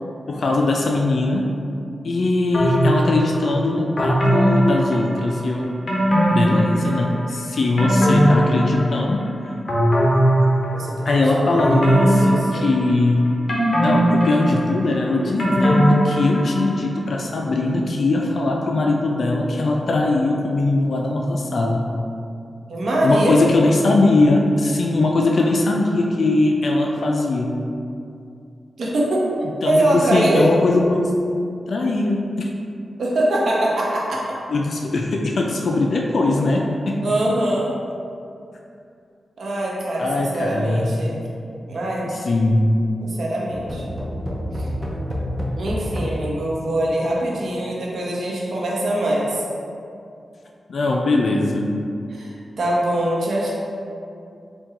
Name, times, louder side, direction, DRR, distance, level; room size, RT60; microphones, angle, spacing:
voice 1, 0.3-1.5 2.0-5.8 6.3-9.3 11.0-13.2 13.8-21.9 23.0-27.6 29.6-29.9 30.1-31.1 31.7-32.5 34.5-37.1 40.0-41.0 42.0-42.7 50.7-51.8, left 2 dB, 65° left, 0 dB, 0.3 m, -20 dB
sound 1, 2.5-3.4 4.0-5.4 5.9-7.2 7.5-9.2 9.7-11.0 11.6-13.0 13.5-16.7 17.1-17.2, equal, 40° left, 0.8 m, -19 dB
voice 2, 10.7-12.7 22.7-23.4 28.8-29.3 29.6-30.5 33.0-34.4 37.0-37.7 39.4-41.2 41.7-42.0 43.0-43.8 44.6-44.7 45.6-49.4 52.1-53.5, right 1 dB, 75° right, -4 dB, 0.8 m, -23 dB
sound 2, 43.5-47.2, equal, 5° right, 0.6 m, -29 dB
4.3 x 2.2 x 3.7 m, 2.5 s
cardioid pair, 75°, 0 cm